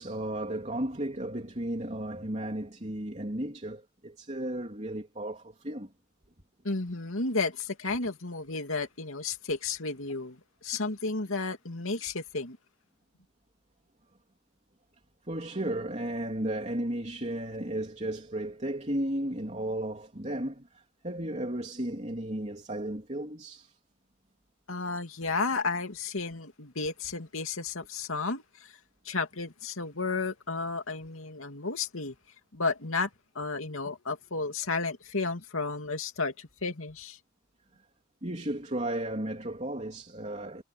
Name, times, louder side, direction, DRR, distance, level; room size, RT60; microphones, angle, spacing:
voice 1, 0.0-5.9 15.3-23.7 38.2-40.6, right 1 dB, 35° right, 3.3 m, -34 dB
voice 2, 6.6-12.6 24.7-28.8 29.0-32.1 32.5-33.1 33.3-37.2, left 3 dB, 80° left, 2.7 m, -32 dB
head